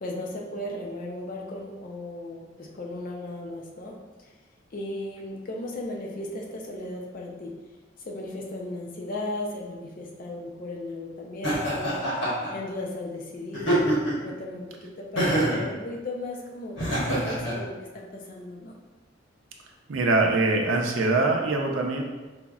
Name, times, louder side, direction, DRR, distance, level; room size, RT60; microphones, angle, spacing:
voice 1, 0.0-4.3 4.7-7.5 8.0-12.0 12.5-18.7, left 1 dB, 45° left, 0 dB, 0.5 m, -36 dB
Laughter, 11.4-12.5 13.5-14.3 15.2-15.7 16.8-17.5, right 1 dB, 70° left, 0.9 m, -25 dB
voice 2, 19.9-22.0, right 2 dB, 85° right, 1 dB, 0.5 m, -23 dB
5.0 x 2.0 x 2.3 m, 1.2 s
head